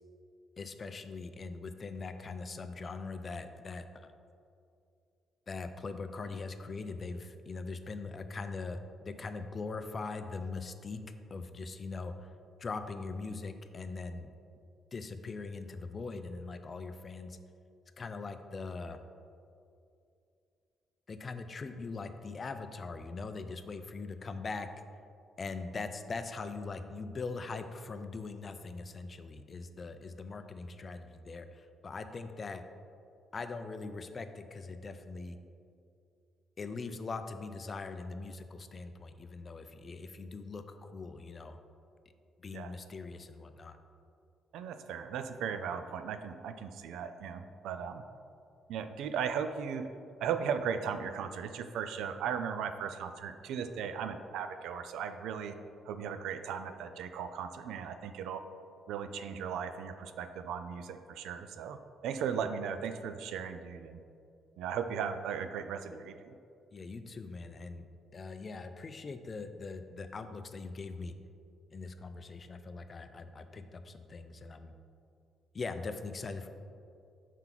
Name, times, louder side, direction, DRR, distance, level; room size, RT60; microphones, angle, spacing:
voice 1, 0.6-4.1 5.5-11.0 11.3-12.3 12.6-14.3 14.9-17.4 18.0-19.0 21.1-24.7 25.4-32.6 33.3-35.4 36.6-41.6 42.4-43.8 66.7-67.9 68.1-71.1 71.7-74.7 75.5-76.5, left 4 dB, 40° left, 9 dB, 0.4 m, -41 dB
voice 2, 44.5-48.0 48.7-49.9 50.2-55.5 55.9-58.4 58.9-64.0 64.6-66.4, right 7 dB, 85° right, 9 dB, 0.3 m, -37 dB
5.7 x 4.5 x 3.8 m, 2.5 s
cardioid pair, 90°, 0 cm